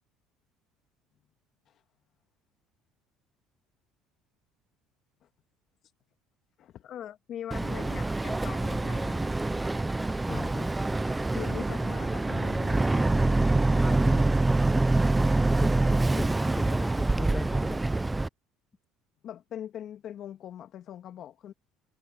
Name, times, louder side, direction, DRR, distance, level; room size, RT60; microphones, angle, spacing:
voice 1, 6.6-9.3 10.3-10.4 11.3-14.4 19.2-21.5, left 10 dB, 55° left, 2.2 m, -42 dB
Boat Water vehicle, 7.5-18.3, right 2 dB, 15° right, 0.8 m, -25 dB
voice 2, 10.3-10.7 15.6-15.8 16.1-17.9, left 3 dB, 20° left, 2.4 m, -39 dB
supercardioid pair, 95°, 0 cm